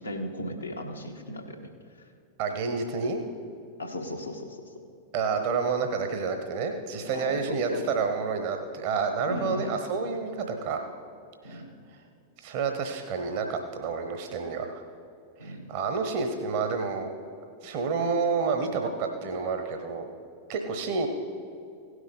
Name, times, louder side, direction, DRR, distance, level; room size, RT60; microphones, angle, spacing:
voice 1, 0.0-2.1 3.8-4.7 7.1-7.9 9.3-9.8 11.4-11.7 15.4-15.7, left 1 dB, 85° left, 2 dB, 1.2 m, -36 dB
voice 2, 2.4-3.2 5.1-10.8 11.4-11.6 12.4-14.8 15.4-17.1 17.6-20.1 20.5-21.1, right 5 dB, 50° right, 5 dB, 1.0 m, -29 dB
16.5 x 6.3 x 5.4 m, 2.5 s
figure-of-eight pair, 90°, 0 cm